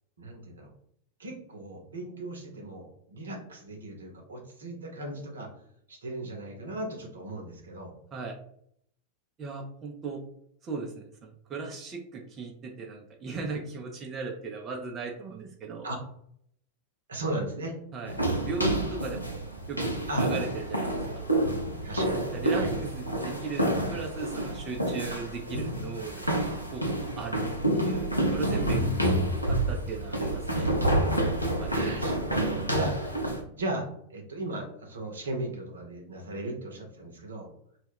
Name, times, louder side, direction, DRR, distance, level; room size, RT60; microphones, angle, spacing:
voice 1, 0.2-0.7 1.2-5.5 5.9-7.9 15.8-16.0 17.1-17.8 20.1-20.3 21.8-22.7 28.6-28.9 31.6-33.0 33.6-37.5, right 1 dB, 70° right, 2 dB, 0.7 m, -37 dB
voice 2, 9.4-10.2 10.6-15.8 17.9-19.4 19.7-21.2 22.3-27.4 27.7-30.7 31.6-31.7, right 4 dB, 25° right, 1 dB, 0.4 m, -37 dB
sound 1, 18.1-33.4, right 1 dB, 90° left, 0.5 m, -28 dB
2.2 x 2.1 x 3.4 m, 0.68 s
figure-of-eight pair, 90°, 0 cm